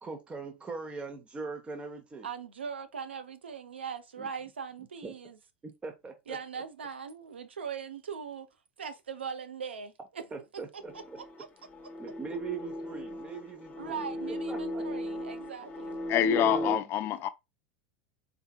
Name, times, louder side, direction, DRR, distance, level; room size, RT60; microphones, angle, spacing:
voice 1, 0.0-2.3 4.2-4.3 5.0-5.1 5.8-6.4 10.3-10.9 12.0-14.0 14.5-14.8 16.2-16.9, right 4 dB, 20° right, 0.9 m, -40 dB
voice 2, 2.2-5.4 6.3-8.5 8.8-10.2 10.7-11.5 13.8-16.0, right 6 dB, 85° right, 0.6 m, -40 dB
sound 1, 10.8-16.7, equal, 25° left, 0.9 m, -36 dB
voice 3, 16.1-17.3, left 13 dB, 40° left, 0.5 m, -26 dB
4.0 x 3.5 x 2.3 m
hypercardioid pair, 90°, 6 cm